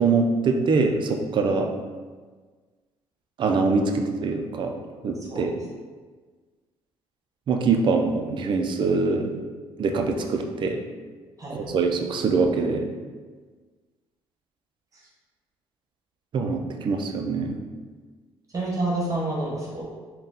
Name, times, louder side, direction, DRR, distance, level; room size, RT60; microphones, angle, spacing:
voice 1, 0.0-1.7 3.4-4.7 5.0-5.5 7.5-9.4 9.8-10.8 11.5-12.9 16.3-17.6, right 4 dB, 50° right, 4 dB, 0.5 m, -23 dB
voice 2, 11.4-11.7 18.5-19.8, right 2 dB, 35° right, -4 dB, 1.1 m, -28 dB
4.0 x 2.3 x 3.8 m, 1.4 s
cardioid pair, 95°, 10 cm